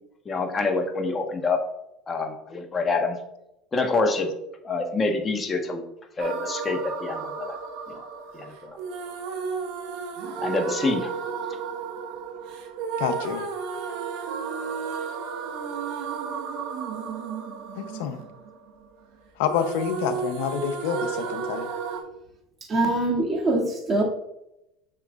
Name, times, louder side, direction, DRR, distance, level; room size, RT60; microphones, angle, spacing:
voice 1, 0.2-1.6 2.1-3.2 3.7-4.3 4.6-5.8 6.2-7.6 7.9-8.0 8.3-8.8 10.4-11.1, left 3 dB, 25° left, 4 dB, 1.3 m, -26 dB
sound 1, 6.2-19.1 19.4-22.0, right 6 dB, 70° right, 1.4 m, -33 dB
voice 2, 13.0-13.5 17.8-18.2 19.4-21.7, left 8 dB, 75° left, 8 dB, 0.8 m, -28 dB
voice 3, 22.7-24.0, right 2 dB, 30° right, -2 dB, 2.4 m, -23 dB
7.5 x 6.5 x 2.5 m, 0.84 s
supercardioid pair, 90°, 0 cm